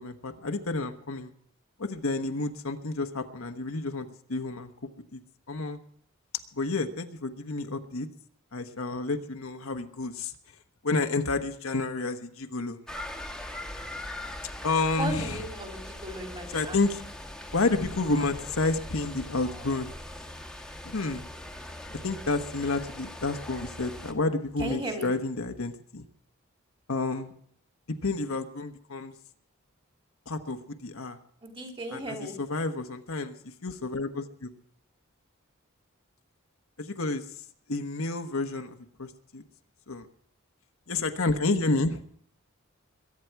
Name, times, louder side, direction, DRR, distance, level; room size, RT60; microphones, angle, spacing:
voice 1, 0.0-1.3 1.8-5.2 5.5-5.8 6.5-8.1 8.5-10.3 10.8-12.8 14.6-15.4 16.5-17.0 17.5-19.9 20.8-21.3 22.0-26.1 26.9-27.3 27.9-29.1 30.3-31.2 31.9-34.5 36.8-37.2 37.7-39.4 39.9-40.0 40.9-42.0, left 3 dB, 80° left, 6 dB, 1.3 m, -30 dB
sound 1, 12.9-24.1, left 1 dB, 5° left, 1.4 m, -41 dB
voice 2, 15.0-16.8 24.6-25.1 31.4-32.4, right 1 dB, 25° right, 2 dB, 3.0 m, -35 dB
22.5 x 9.7 x 4.7 m, 0.64 s
head